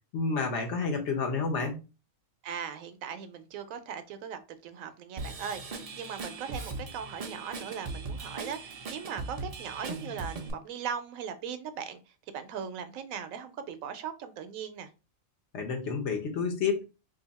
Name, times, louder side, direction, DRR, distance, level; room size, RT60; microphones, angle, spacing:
voice 1, 0.1-1.8 15.5-16.8, left 4 dB, 60° left, 1.1 m, -30 dB
voice 2, 2.4-12.0 12.3-14.9, right 7 dB, 85° right, 1.0 m, -39 dB
Drum kit / Drum, 5.2-10.5, right 3 dB, 65° right, 0.3 m, -39 dB
2.8 x 2.6 x 4.0 m
omnidirectional pair, 1.4 m